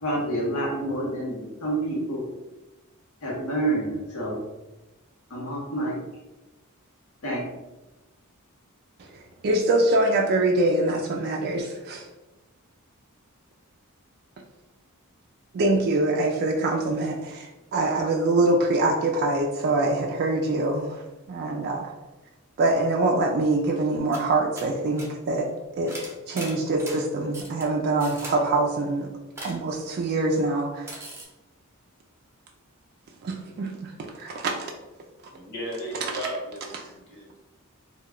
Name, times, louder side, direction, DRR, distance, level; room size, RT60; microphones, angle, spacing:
voice 1, 0.0-2.3 3.2-4.4 5.3-6.0 7.2-7.5, right 1 dB, 75° left, -3 dB, 0.9 m, -28 dB
voice 2, 9.1-12.1 15.5-21.0 21.3-21.9 22.6-26.0 26.3-29.1 29.4-30.9 33.2-34.7, right 2 dB, 45° right, 0 dB, 0.3 m, -24 dB
sound 1, 24.1-24.3 24.5-25.1 25.9-27.0 27.3-27.6 28.0-28.4 29.4-29.6 30.9-31.2, right 1 dB, 10° right, 0.7 m, -38 dB
voice 3, 35.3-37.4, right 1 dB, 55° left, -4 dB, 1.0 m, -35 dB
2.2 x 2.1 x 3.5 m, 1.1 s
head